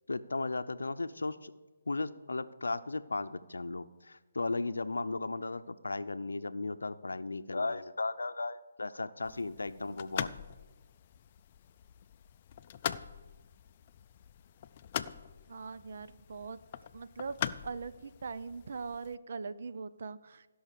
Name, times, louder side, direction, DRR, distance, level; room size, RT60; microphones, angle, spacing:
voice 1, 0.1-1.5 1.9-10.3, left 3 dB, 90° left, 13 dB, 0.6 m, -36 dB
sound 1, 9.2-19.2, left 10 dB, 35° left, 0.4 m, -42 dB
voice 2, 15.5-16.6 16.9-17.4 17.6-20.5, right 4 dB, 55° right, 14 dB, 0.6 m, -41 dB
16.0 x 5.6 x 6.7 m, 1.3 s
hypercardioid pair, 155°, 0 cm